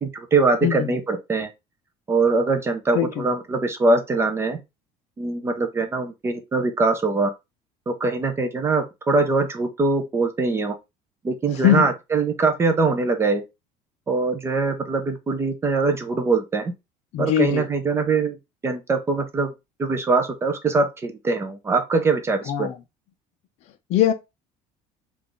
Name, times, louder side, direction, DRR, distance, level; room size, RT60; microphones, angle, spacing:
voice 1, 0.0-1.5 2.1-4.6 5.2-7.3 7.9-10.8 11.2-13.4 14.1-16.7 17.2-18.4 18.6-19.5 19.8-22.7, right 3 dB, 20° right, 0.4 m, -22 dB
voice 2, 11.5-11.9 17.1-17.6 22.5-22.7 23.9-24.1, left 11 dB, 50° left, 0.5 m, -21 dB
3.4 x 2.4 x 3.7 m
cardioid pair, 165°, 14 cm